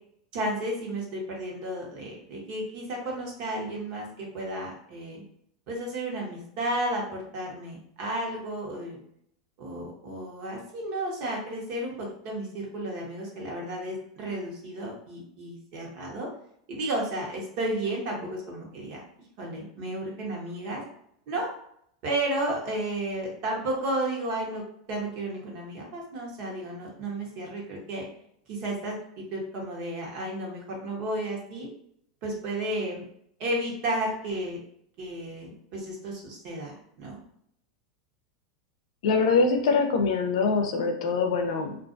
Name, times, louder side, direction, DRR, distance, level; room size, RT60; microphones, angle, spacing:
voice 1, 0.3-5.2 5.7-9.0 9.6-16.3 16.7-19.0 19.4-20.8 21.3-21.5 22.0-28.1 28.5-31.7 32.2-33.0 33.4-34.6 35.0-37.2, right 1 dB, 55° right, -1 dB, 1.0 m, -33 dB
voice 2, 39.0-41.8, left 4 dB, 75° left, 5 dB, 0.5 m, -24 dB
2.4 x 2.3 x 2.6 m, 0.69 s
supercardioid pair, 125°, 3 cm